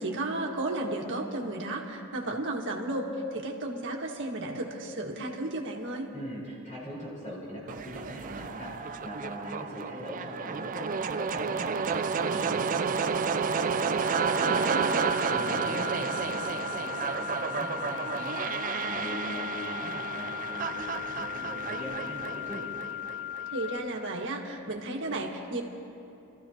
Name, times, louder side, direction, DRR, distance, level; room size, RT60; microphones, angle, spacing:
voice 1, 0.0-6.1 14.5-15.2 23.5-25.6, right 2 dB, 60° right, 0 dB, 1.7 m, -33 dB
voice 2, 6.1-14.7 15.3-22.6, left 1 dB, 35° left, -7 dB, 4.1 m, -41 dB
sound 1, 7.7-23.7, right 5 dB, 40° right, 0.4 m, -31 dB
sound 2, 13.8-23.8, left 13 dB, 85° left, 4.1 m, -38 dB
29.5 x 14.5 x 2.9 m, 2.8 s
head